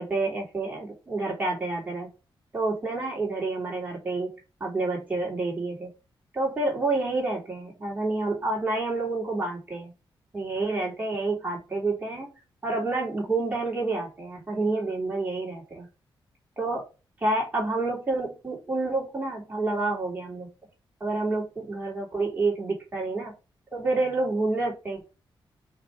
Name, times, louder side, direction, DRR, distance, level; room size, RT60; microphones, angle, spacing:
voice 1, 0.0-2.1 2.5-4.3 4.6-5.9 6.3-9.9 10.3-12.3 12.6-15.9 16.6-16.8 17.2-20.5 21.0-23.3 23.7-25.0, right 2 dB, 20° right, -3 dB, 3.4 m, -28 dB
5.9 x 4.3 x 4.9 m, 0.31 s
wide cardioid pair, 145°, 9 cm